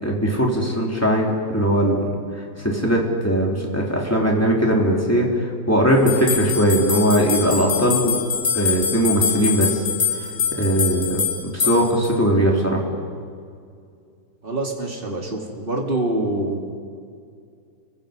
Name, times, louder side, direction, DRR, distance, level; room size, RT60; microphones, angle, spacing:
voice 1, 0.0-2.0 2.6-8.2 8.5-9.8 10.5-12.8, equal, 10° left, -2 dB, 3.6 m, -20 dB
sound 1, 6.1-12.1, left 7 dB, 55° left, 5.2 m, -24 dB
voice 2, 14.4-16.7, right 1 dB, 30° right, 0 dB, 3.2 m, -25 dB
30.0 x 23.5 x 5.3 m, 2.3 s
omnidirectional pair, 1.9 m